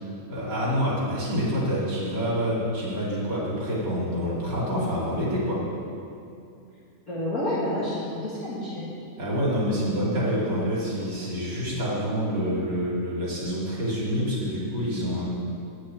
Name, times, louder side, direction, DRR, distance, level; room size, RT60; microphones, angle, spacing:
voice 1, 0.3-5.7 9.2-15.3, equal, 35° right, -7 dB, 2.9 m, -27 dB
voice 2, 7.1-8.9 10.0-10.2 11.2-11.3, left 1 dB, 30° left, -9 dB, 2.1 m, -30 dB
10.0 x 6.5 x 8.7 m, 2.6 s
omnidirectional pair, 3.5 m